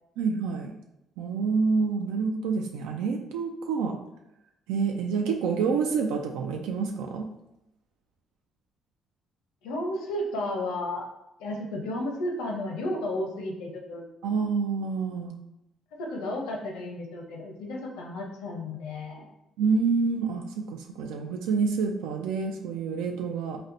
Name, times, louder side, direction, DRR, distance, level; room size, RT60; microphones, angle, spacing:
voice 1, 0.2-0.7 1.2-4.0 4.7-7.3 14.2-15.4 19.6-23.6, right 5 dB, 90° right, 3 dB, 0.3 m, -27 dB
voice 2, 9.6-11.1 11.4-14.0 15.9-19.3, left 1 dB, 90° left, 1 dB, 0.6 m, -33 dB
4.0 x 2.1 x 2.5 m, 0.86 s
cardioid pair, 85°, 0 cm